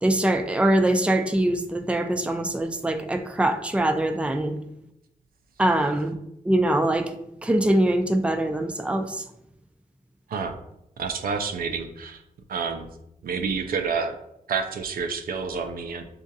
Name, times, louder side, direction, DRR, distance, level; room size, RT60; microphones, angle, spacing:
voice 1, 0.0-4.5 5.6-6.1 6.4-7.1 7.4-9.2, right 1 dB, 10° right, 5 dB, 0.5 m, -23 dB
voice 2, 11.0-12.2 12.5-12.9 13.2-14.2 14.5-16.0, right 5 dB, 80° right, 7 dB, 0.5 m, -29 dB
6.2 x 2.4 x 2.7 m, 0.82 s
cardioid pair, 65°, 15 cm